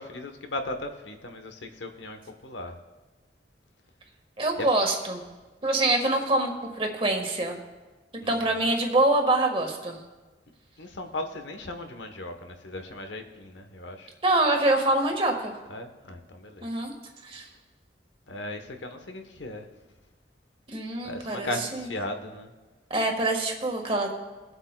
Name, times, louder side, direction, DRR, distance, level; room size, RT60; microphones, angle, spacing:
voice 1, 0.0-2.7 4.5-4.7 8.2-8.6 10.8-14.1 15.7-16.7 18.3-19.6 21.0-22.5, left 1 dB, 80° left, 6 dB, 1.0 m, -37 dB
voice 2, 4.4-5.2 5.6-7.6 8.3-10.0 14.2-15.5 16.6-16.9 17.2-17.5 20.7-21.9 22.9-24.1, right 2 dB, 30° right, 3 dB, 1.4 m, -25 dB
22.5 x 7.9 x 2.2 m, 1.2 s
head